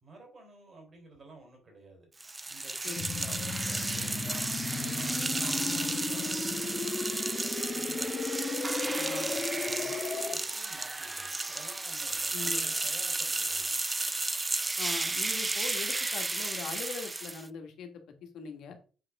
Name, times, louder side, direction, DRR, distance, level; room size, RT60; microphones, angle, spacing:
voice 1, 0.0-2.1 2.5-4.4 4.7-8.1 9.0-13.8, right 2 dB, 45° right, 2 dB, 3.8 m, -52 dB
sound 1, 2.2-17.5, right 2 dB, 20° right, 0.5 m, -33 dB
sound 2, 3.0-10.4, left 4 dB, 40° left, 1.3 m, -35 dB
voice 2, 9.0-9.9 12.3-12.7 14.8-17.9 18.3-18.8, left 6 dB, 80° left, 4 dB, 1.6 m, -42 dB
7.6 x 5.0 x 3.6 m, 0.36 s
cardioid pair, 90°, 0 cm